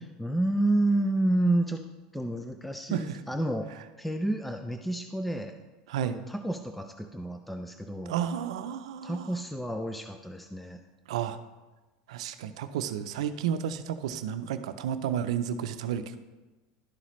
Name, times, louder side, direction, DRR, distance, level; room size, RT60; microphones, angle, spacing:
voice 1, 0.2-1.8 2.1-3.7 4.0-5.6 6.0-8.1 9.0-10.8, right 1 dB, ahead, 6 dB, 0.4 m, -29 dB
voice 2, 2.9-3.2 5.9-6.2 8.1-9.3 11.1-11.4 12.1-16.2, right 9 dB, 85° right, 10 dB, 0.5 m, -32 dB
11.5 x 5.7 x 3.1 m, 1.2 s
supercardioid pair, 125°, 3 cm